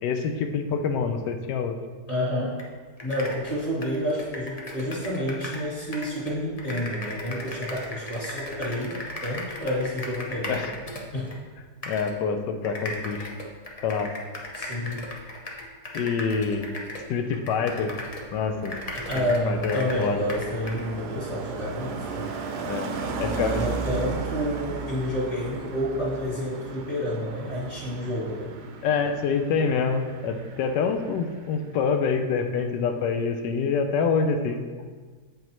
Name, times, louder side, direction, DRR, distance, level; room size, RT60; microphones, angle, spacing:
voice 1, 0.0-1.8 10.5-10.7 11.9-13.3 13.8-14.1 15.9-16.7 17.1-17.9 18.3-18.8 19.2-20.2 22.6-22.9 23.2-23.6 28.8-34.6, left 5 dB, 85° left, 7 dB, 1.2 m, -26 dB
voice 2, 2.1-2.6 3.0-10.6 11.1-11.4 14.5-15.0 18.9-22.3 23.2-28.5, equal, 40° left, -6 dB, 2.0 m, -29 dB
sound 1, 2.6-2.7 3.0-5.7 5.9-11.4 11.8-12.1 12.6-18.3 18.6-20.8, left 1 dB, 70° left, 0.3 m, -37 dB
Car passing by, 17.2-31.9 32.2-32.5, right 5 dB, 75° right, 1.2 m, -36 dB
7.7 x 5.2 x 3.0 m, 1.5 s
omnidirectional pair, 1.8 m